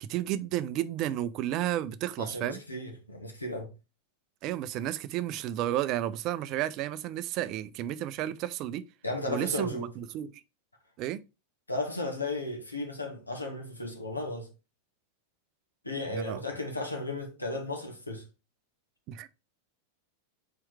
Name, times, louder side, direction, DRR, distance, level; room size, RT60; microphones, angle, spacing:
voice 1, 0.0-2.6 4.4-8.8 9.3-10.3 11.0-11.2 16.1-16.4 19.1-19.3, right 12 dB, 40° right, 0.5 m, -32 dB
voice 2, 2.2-3.7 9.0-9.9 11.7-14.5 15.8-18.2, left 2 dB, 85° left, 1.6 m, -35 dB
4.6 x 4.4 x 4.7 m
figure-of-eight pair, 90°, 0 cm